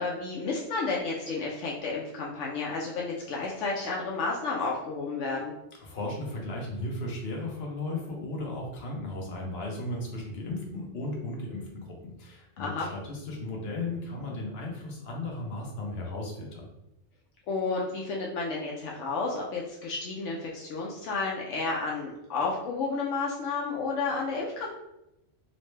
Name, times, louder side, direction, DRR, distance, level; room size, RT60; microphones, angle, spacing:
voice 1, 0.0-5.5 12.6-12.9 17.5-24.7, left 4 dB, 80° left, -2 dB, 0.9 m, -31 dB
voice 2, 5.8-16.7, left 2 dB, 60° left, -1 dB, 1.1 m, -35 dB
4.0 x 2.1 x 3.2 m, 0.87 s
omnidirectional pair, 1.3 m